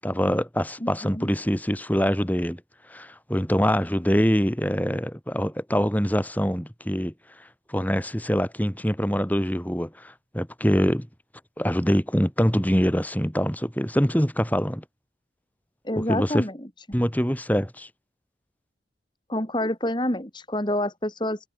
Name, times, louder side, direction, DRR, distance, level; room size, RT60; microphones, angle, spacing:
voice 1, 0.0-2.6 2.9-7.1 7.7-11.1 11.6-14.8 15.9-16.4 16.9-17.9, equal, 10° left, 6.5 m, -24 dB
voice 2, 0.8-1.3 15.8-16.7 19.3-21.4, left 1 dB, 25° left, 3.0 m, -28 dB
head